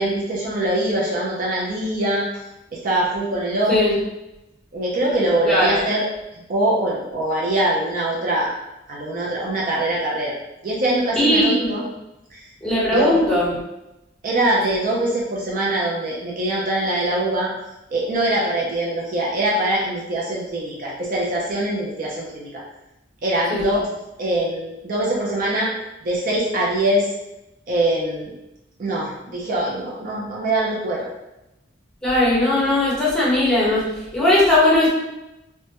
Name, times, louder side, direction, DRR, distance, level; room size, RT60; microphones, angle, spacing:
voice 1, 0.0-2.3 2.7-4.0 4.7-6.0 6.5-8.5 8.9-10.3 10.6-11.8 12.3-12.5 12.9-13.2 14.2-17.5 17.9-22.6 23.2-23.8 24.2-25.7 26.0-27.1 27.7-28.3 28.8-31.1, right 1 dB, 45° right, -4 dB, 0.4 m, -23 dB
voice 2, 5.4-5.8 11.2-11.8 12.6-13.5 23.5-23.7 32.0-34.9, left 1 dB, 5° left, -9 dB, 0.9 m, -18 dB
2.1 x 2.1 x 2.8 m, 0.93 s
head